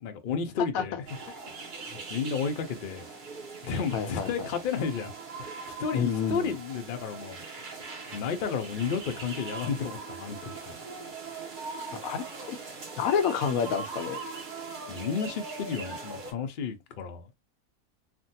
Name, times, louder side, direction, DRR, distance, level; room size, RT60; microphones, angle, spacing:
voice 1, 0.0-1.1 2.1-3.1 3.6-5.1 5.4-7.4 8.1-10.8 14.9-17.3, left 6 dB, 55° left, 0.6 m, -32 dB
sound 1, 1.1-16.3, right 4 dB, 40° right, 0.9 m, -41 dB
voice 2, 3.9-4.5 5.9-6.5 12.0-12.6 13.0-14.2, left 7 dB, 80° left, 1.0 m, -29 dB
3.4 x 2.2 x 2.7 m
omnidirectional pair, 1.5 m